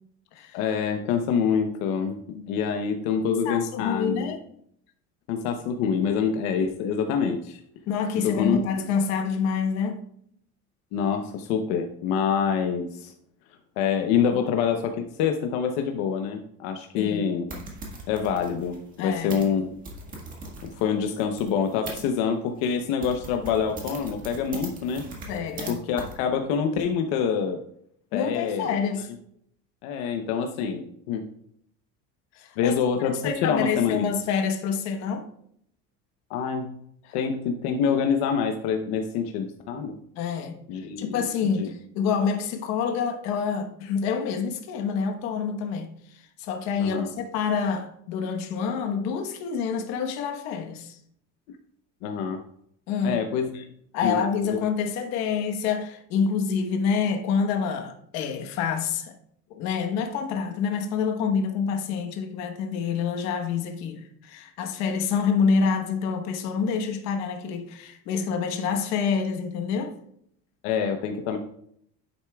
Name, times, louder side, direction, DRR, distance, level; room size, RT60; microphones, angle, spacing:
voice 1, 0.5-2.2 2.5-4.3 5.3-7.6 8.2-8.6 10.9-13.1 13.8-17.5 18.1-19.6 20.6-25.0 25.7-27.6 28.1-28.8 29.8-31.3 32.6-34.1 36.3-36.7 37.1-40.0 40.7-41.3 41.6-41.7 46.8-47.1 52.0-52.4 53.0-53.6 54.0-54.2 54.5-54.6 70.6-71.4, left 7 dB, 75° left, 0.9 m, -26 dB
voice 2, 3.4-4.4 7.9-10.0 16.9-17.3 19.0-19.3 25.3-25.8 28.1-29.1 32.4-32.7 33.2-35.3 37.0-37.2 40.2-40.6 41.0-51.0 52.9-53.2 53.9-59.1 59.5-69.9, left 6 dB, 55° left, 1.2 m, -27 dB
sound 1, 17.5-22.0 22.6-22.7 23.0-25.7 26.0-26.1, right 2 dB, 25° right, 1.7 m, -40 dB
10.0 x 8.1 x 2.3 m
cardioid pair, 180°, 32 cm